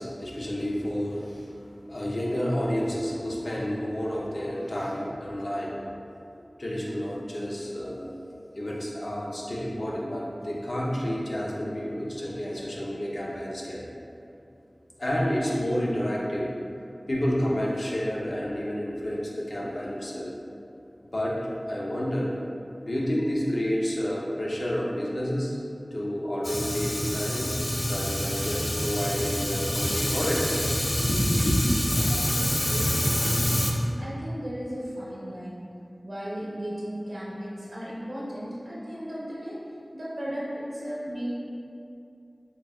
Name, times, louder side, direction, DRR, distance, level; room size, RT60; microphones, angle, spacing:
voice 1, 0.0-1.6 1.9-5.7 6.6-8.1 8.5-13.8 15.0-16.5 17.1-20.3 21.0-21.4 21.7-22.3 22.8-25.6 25.9-27.5 27.9-30.6 31.0-31.6, equal, 75° left, -5 dB, 0.6 m, -29 dB
Fire, 26.4-33.7, equal, 35° left, 0.4 m, -27 dB
voice 2, 32.0-33.7 34.0-35.7 36.0-39.5 39.9-41.3, equal, 80° right, -9 dB, 0.7 m, -36 dB
3.8 x 3.6 x 2.2 m, 2.6 s
wide cardioid pair, 45°, 0 cm